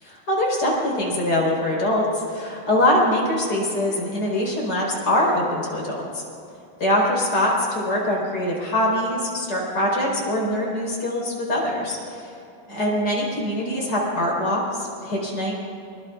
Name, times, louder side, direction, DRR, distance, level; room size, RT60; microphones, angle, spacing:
voice 1, 0.0-6.0 6.8-12.2 12.7-15.5, left 1 dB, 25° left, -3 dB, 4.8 m, -23 dB
24.0 x 23.0 x 2.5 m, 2.7 s
omnidirectional pair, 4.3 m